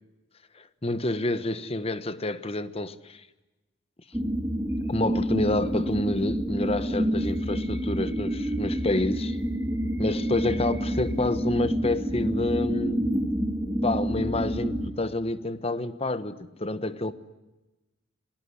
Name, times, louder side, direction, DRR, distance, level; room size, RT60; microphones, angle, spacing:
voice 1, 0.6-3.2 4.9-9.4 10.0-13.1 13.8-17.1, left 2 dB, 30° left, 1.2 m, -28 dB
sound 1, 4.1-14.9, equal, 10° right, 1.9 m, -28 dB
28.5 x 19.5 x 9.9 m
head